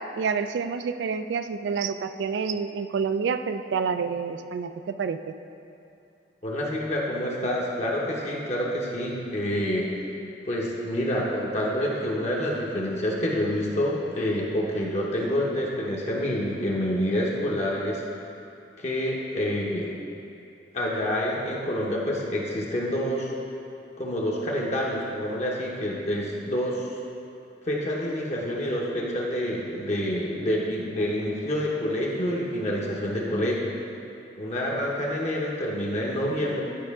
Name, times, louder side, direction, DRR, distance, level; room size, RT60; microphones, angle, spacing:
voice 1, 0.0-5.3, right 5 dB, 80° right, 10 dB, 0.3 m, -28 dB
voice 2, 6.4-9.9 10.5-18.0 18.8-19.9 20.7-23.3 24.0-26.9 27.7-33.7 34.4-36.6, equal, 40° left, -3 dB, 0.8 m, -27 dB
10.5 x 4.8 x 3.6 m, 2.6 s
head